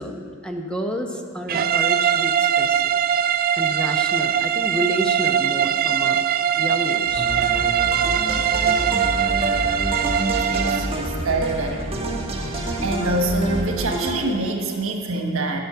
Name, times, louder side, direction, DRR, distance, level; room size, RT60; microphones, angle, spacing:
voice 1, 0.0-2.9 3.6-6.2 6.6-7.3 12.4-12.5, equal, 5° left, 2 dB, 0.9 m, -30 dB
sound 1, 1.5-11.0, right 9 dB, 45° right, 0.3 m, -21 dB
sound 2, 7.1-14.1, right 1 dB, 30° right, 1.3 m, -27 dB
voice 2, 10.3-15.6, right 2 dB, 80° right, 3 dB, 1.4 m, -26 dB
11.0 x 8.1 x 6.9 m, 2.3 s
head